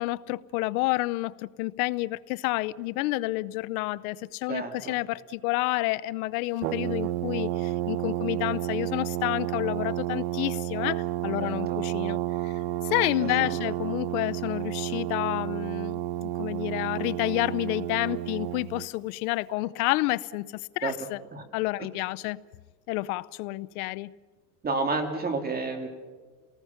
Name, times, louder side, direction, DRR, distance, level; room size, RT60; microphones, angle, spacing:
voice 1, 0.0-12.5 12.8-20.5 20.8-21.2 21.5-22.4 22.9-24.1, left 19 dB, 75° left, 0.8 m, -29 dB
voice 2, 4.5-5.0 11.4-11.8 13.4-13.5 20.8-20.9 21.3-21.4 24.6-25.9, right 3 dB, 20° right, 2.4 m, -30 dB
Brass instrument, 6.6-18.9, right 14 dB, 90° right, 0.9 m, -31 dB
29.0 x 19.5 x 5.8 m
supercardioid pair, 140°, 43 cm